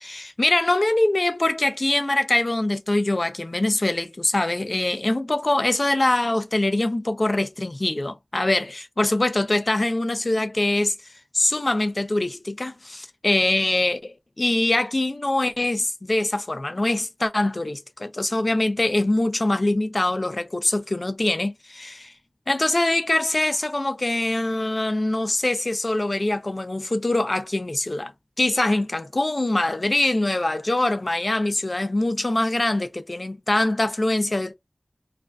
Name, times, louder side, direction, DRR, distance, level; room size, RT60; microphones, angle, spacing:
voice 1, 0.1-10.9 11.3-22.1 22.5-28.1 28.4-34.5, left 2 dB, 50° left, 0.4 m, -23 dB
2.4 x 2.2 x 2.2 m
wide cardioid pair, 50°, 0 cm